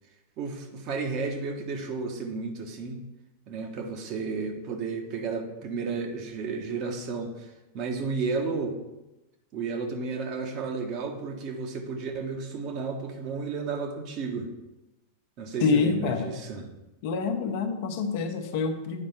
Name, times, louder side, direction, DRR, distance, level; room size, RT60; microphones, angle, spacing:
voice 1, 0.4-3.0 3.5-8.8 9.5-14.5 15.4-16.6, right 4 dB, 40° right, 4 dB, 1.3 m, -32 dB
voice 2, 15.6-16.3 17.0-19.1, left 5 dB, 50° left, 5 dB, 1.0 m, -27 dB
8.9 x 5.3 x 5.8 m, 1.0 s
figure-of-eight pair, 90°, 0 cm